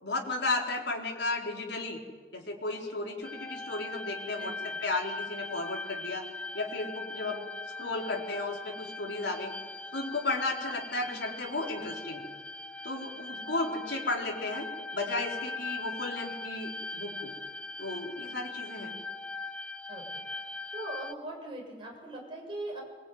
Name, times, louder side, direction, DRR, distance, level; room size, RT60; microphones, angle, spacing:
voice 1, 0.0-2.0 2.3-6.3 6.5-7.5 7.8-9.5 9.9-12.3 12.8-14.7 14.9-17.3 17.8-19.0, left 2 dB, 70° left, 0 dB, 4.0 m, -34 dB
sound 1, 3.2-21.1, left 3 dB, 5° left, 0.7 m, -40 dB
voice 2, 4.4-4.8 14.3-14.5 19.9-20.2 20.7-22.8, right 1 dB, 30° right, -2 dB, 7.5 m, -41 dB
23.0 x 20.5 x 9.5 m, 1.5 s
head